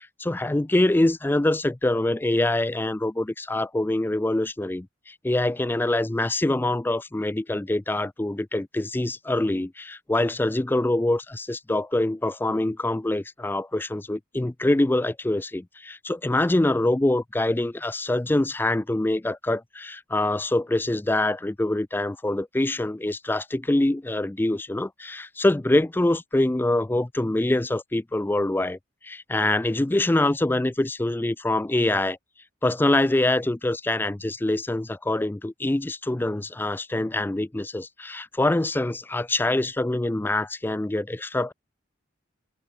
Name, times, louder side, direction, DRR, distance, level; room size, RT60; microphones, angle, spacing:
voice 1, 0.0-28.8 29.0-32.2 32.6-41.5, left 1 dB, 10° left, 0.4 m, -24 dB
head